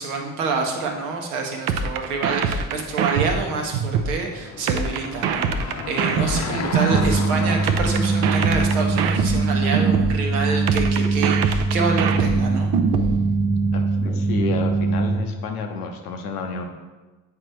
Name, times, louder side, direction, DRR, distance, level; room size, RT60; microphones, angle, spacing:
voice 1, 0.0-12.7, right 4 dB, 75° right, 2 dB, 1.0 m, -27 dB
sound 1, 1.7-4.2 4.7-7.2 7.7-10.2 10.7-13.2, right 6 dB, 60° right, 0.6 m, -23 dB
Car passing by / Engine, 3.3-10.1, left 5 dB, 35° left, 0.7 m, -34 dB
sound 2, 6.9-15.3, right 3 dB, 5° right, 0.7 m, -22 dB
voice 2, 13.7-16.6, left 4 dB, 80° left, 4 dB, 0.8 m, -30 dB
8.3 x 4.7 x 3.2 m, 1.2 s
figure-of-eight pair, 40°, 45 cm